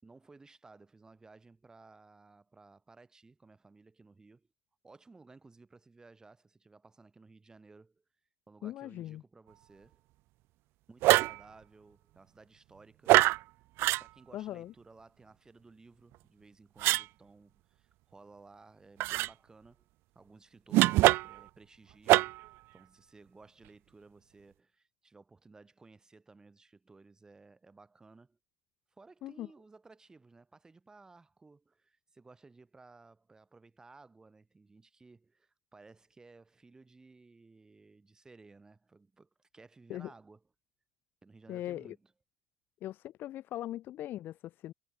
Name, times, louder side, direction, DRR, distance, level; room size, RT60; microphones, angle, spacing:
voice 1, 0.0-4.5 4.8-8.0 8.5-10.0 10.9-13.3 14.0-19.9 20.2-22.5 22.7-28.4 28.9-40.4 41.2-42.1, right 3 dB, 15° right, 5.2 m, -57 dB
voice 2, 8.6-9.2 14.3-14.7 29.2-29.5 39.9-40.1 41.5-42.0 42.8-44.7, left 13 dB, 55° left, 1.8 m, -40 dB
sound 1, 11.0-11.4 13.1-13.4 13.8-14.0 16.8-17.0 19.0-19.3 20.7-21.4 22.1-22.5, right 19 dB, 70° right, 0.4 m, -23 dB
cardioid pair, 125°, 4 cm